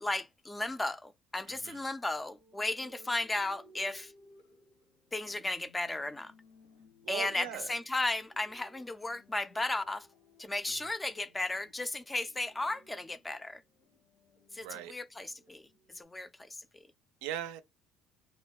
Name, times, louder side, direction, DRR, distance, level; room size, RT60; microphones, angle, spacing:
voice 1, 0.0-4.1 5.1-6.3 7.1-10.1 10.4-13.6 14.5-15.7 16.0-16.5, left 2 dB, 15° left, 0.3 m, -35 dB
voice 2, 1.5-1.8 7.0-7.7 10.7-10.9 14.6-14.9 17.2-17.6, right 11 dB, 85° right, 0.4 m, -40 dB
sound 1, 2.3-16.0, left 1 dB, 85° left, 1.2 m, -62 dB
2.8 x 2.1 x 2.2 m
supercardioid pair, 95°, 0 cm